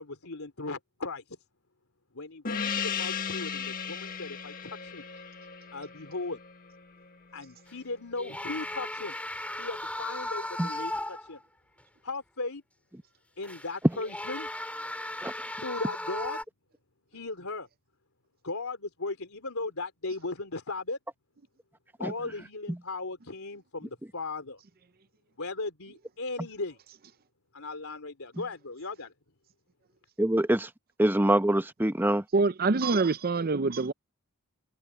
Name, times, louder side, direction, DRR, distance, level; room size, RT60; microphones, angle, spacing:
voice 1, 0.0-1.4 2.1-5.1 5.7-6.4 7.3-9.1 9.6-11.4 12.0-12.6 13.4-14.5 15.6-16.4 17.1-17.7 18.4-21.0 22.0-24.6 25.4-26.8 27.5-29.1, left 3 dB, 90° left, 3.4 m, -37 dB
Gong, 2.5-7.5, left 6 dB, 40° left, 1.5 m, -36 dB
sound 1, 7.7-7.8 8.2-11.4 11.8-11.9 13.4-16.4, left 1 dB, 5° left, 2.6 m, -36 dB
voice 2, 30.2-30.7 31.0-32.2, right 1 dB, 10° right, 0.9 m, -24 dB
voice 3, 32.3-33.9, right 3 dB, 45° right, 0.6 m, -25 dB
head